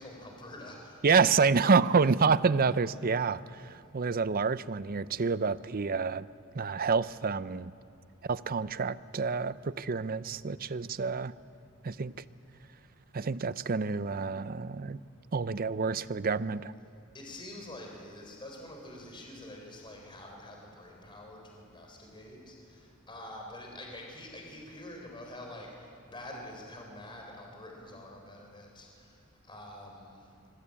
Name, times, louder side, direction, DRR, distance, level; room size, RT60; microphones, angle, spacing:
voice 1, 0.0-1.0 17.1-30.5, left 1 dB, 25° left, 1 dB, 4.0 m, -46 dB
voice 2, 1.0-6.3 6.5-7.7 8.2-11.3 11.8-12.2 13.1-15.0 15.3-16.7, right 5 dB, 45° right, 16 dB, 0.6 m, -28 dB
26.5 x 21.0 x 8.7 m, 2.5 s
head